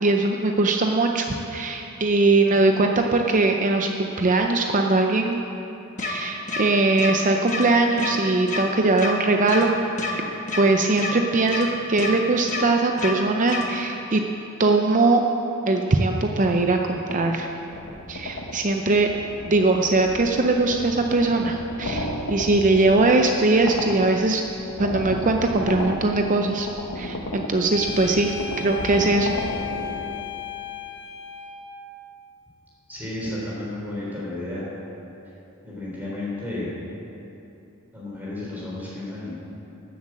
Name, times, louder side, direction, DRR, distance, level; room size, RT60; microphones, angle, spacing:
voice 1, 0.0-5.4 6.0-9.7 10.1-10.2 10.6-14.2 14.6-15.2 15.7-17.5 18.1-19.1 19.5-24.4 24.8-26.7 27.0-29.3, right 2 dB, 35° right, 3 dB, 0.6 m, -21 dB
sound 1, 6.0-6.1 6.5-6.6 7.0-7.1 7.5-7.6 8.0-8.1 8.5-8.6 9.0-9.1 9.5-9.6 10.0-10.1 10.5-10.6 11.0-11.1 11.5-11.6 12.0-12.1 12.5-12.6 13.0-13.1 13.5-13.6, left 4 dB, 35° left, 1.3 m, -28 dB
sound 2, 17.1-30.2, left 1 dB, 90° left, 1.2 m, -34 dB
sound 3, 27.7-31.9, left 9 dB, 55° left, 0.7 m, -35 dB
voice 2, 32.9-34.7 35.6-36.7 37.9-39.4, left 1 dB, 10° right, -7 dB, 3.6 m, -32 dB
13.0 x 8.0 x 7.4 m, 2.9 s
head